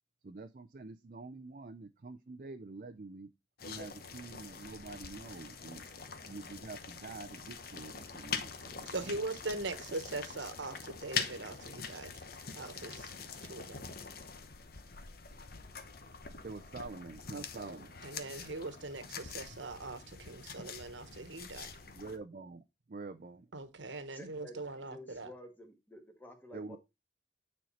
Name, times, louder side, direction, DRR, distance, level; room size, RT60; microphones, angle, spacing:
voice 1, 0.2-3.3 3.6-5.8 6.3-9.2 16.4-17.9 22.0-23.5 26.5-26.8, right 3 dB, 45° right, 0.5 m, -47 dB
sound 1, 3.6-22.2, left 6 dB, 50° left, 0.9 m, -44 dB
voice 2, 8.9-12.1 12.5-13.1 13.5-13.8 17.3-21.7 23.5-25.3, right 2 dB, 80° right, 1.3 m, -41 dB
voice 3, 24.1-24.6 24.9-26.8, left 1 dB, 10° left, 1.5 m, -51 dB
9.3 x 4.3 x 4.2 m
head